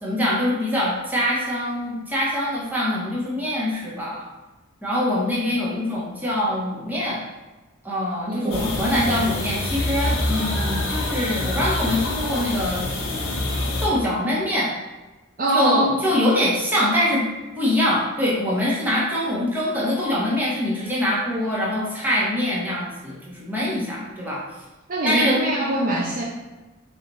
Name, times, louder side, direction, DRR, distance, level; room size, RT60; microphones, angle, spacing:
voice 1, 0.0-4.3 4.8-7.2 7.8-12.8 13.8-14.7 15.5-17.2 17.6-24.4 25.0-25.4, left 1 dB, 10° right, -6 dB, 1.0 m, -24 dB
voice 2, 8.3-9.0 15.4-15.9 24.9-26.2, right 1 dB, 40° right, -3 dB, 0.5 m, -23 dB
sound 1, 8.5-13.9, left 1 dB, 65° left, 0.9 m, -26 dB
4.3 x 2.4 x 4.0 m, 1.2 s
head